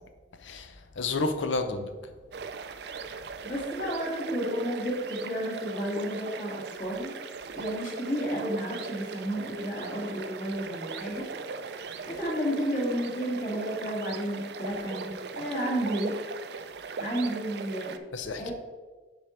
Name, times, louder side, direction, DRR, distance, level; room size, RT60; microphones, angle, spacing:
voice 1, 0.4-1.9 18.1-18.5, left 3 dB, 75° left, 8 dB, 0.7 m, -31 dB
sound 1, 2.3-18.0, right 5 dB, 55° right, 0.4 m, -39 dB
voice 2, 3.4-7.2 7.5-11.3 12.0-16.2 17.0-17.9 18.4-18.5, equal, 40° left, -4 dB, 2.1 m, -32 dB
8.5 x 5.1 x 4.3 m, 1.3 s
head